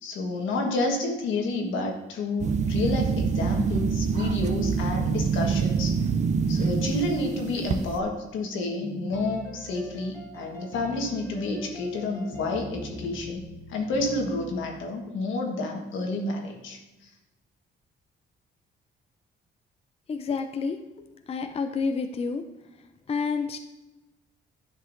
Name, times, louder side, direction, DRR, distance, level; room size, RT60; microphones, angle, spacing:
voice 1, 0.0-5.9 6.5-13.4 13.7-16.8, left 2 dB, 80° left, 1 dB, 1.4 m, -29 dB
sound 1, 2.4-8.0, right 5 dB, 35° right, 0.5 m, -26 dB
sound 2, 8.8-14.9, equal, 15° left, 1.0 m, -42 dB
voice 2, 20.1-20.8 21.3-22.4 23.1-23.6, left 5 dB, 30° left, 7 dB, 0.5 m, -28 dB
10.0 x 5.5 x 2.6 m, 1.0 s
cardioid pair, 90°, 20 cm